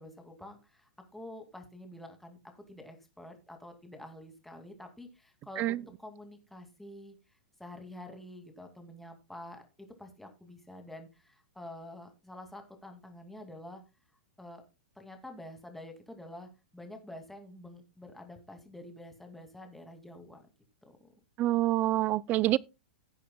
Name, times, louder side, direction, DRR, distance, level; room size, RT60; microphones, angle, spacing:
voice 1, 0.0-7.2 7.6-13.8 14.4-14.6 15.0-20.5 20.8-21.1, left 1 dB, 5° left, 2.4 m, -48 dB
voice 2, 21.4-22.6, right 15 dB, 35° right, 0.5 m, -26 dB
17.0 x 8.5 x 2.3 m
hypercardioid pair, 120°, 5 cm